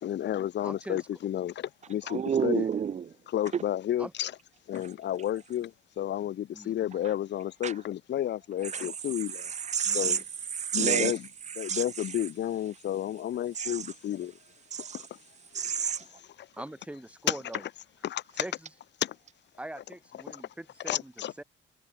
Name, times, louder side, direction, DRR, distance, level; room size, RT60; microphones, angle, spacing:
voice 1, 0.0-2.6 3.3-4.3 4.7-5.7 6.0-9.4 9.9-10.2 10.7-11.3 11.6-14.3 14.9-15.0 17.3-17.4 18.0-18.4 19.0-19.1 20.8-21.4, left 11 dB, 65° left, 1.0 m, -31 dB
voice 2, 0.6-1.0 2.5-2.7 4.0-4.1 6.5-6.9 9.8-10.2 16.6-17.6 18.4-18.5 19.6-21.1 21.4-21.5, right 1 dB, 5° right, 1.5 m, -42 dB
voice 3, 2.0-3.1 3.5-3.6 4.8-4.9 7.6-7.8 8.6-8.8 9.2-10.2 10.5-11.2 11.4-12.2 13.5-13.9 14.7-15.1 15.5-16.0, right 7 dB, 35° right, 0.5 m, -30 dB
cardioid pair, 90°, 20 cm